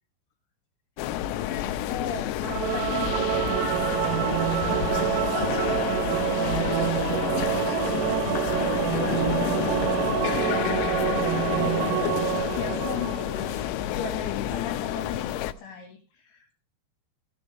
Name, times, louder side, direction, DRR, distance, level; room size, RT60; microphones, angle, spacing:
sound 1, 1.0-15.5, left 12 dB, 85° left, 3.5 m, -29 dB
voice 1, 1.2-2.3 2.7-3.7 4.6-5.4 6.2-13.3 14.0-16.5, left 6 dB, 70° left, 3 dB, 4.2 m, -38 dB
Singing / Musical instrument, 2.4-13.7, right 18 dB, 80° right, 3.2 m, -27 dB
15.5 x 7.6 x 5.1 m, 0.36 s
omnidirectional pair, 6.0 m